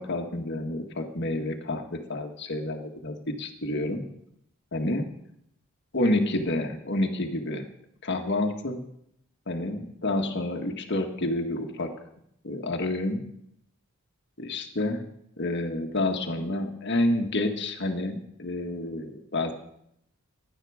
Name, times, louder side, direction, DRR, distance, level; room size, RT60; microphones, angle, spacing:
voice 1, 0.0-4.0 4.7-5.0 5.9-7.7 8.0-8.8 9.5-11.9 12.4-13.2 14.4-15.0 15.4-19.5, left 1 dB, 55° left, 4 dB, 1.7 m, -29 dB
17.0 x 11.5 x 5.0 m, 0.76 s
head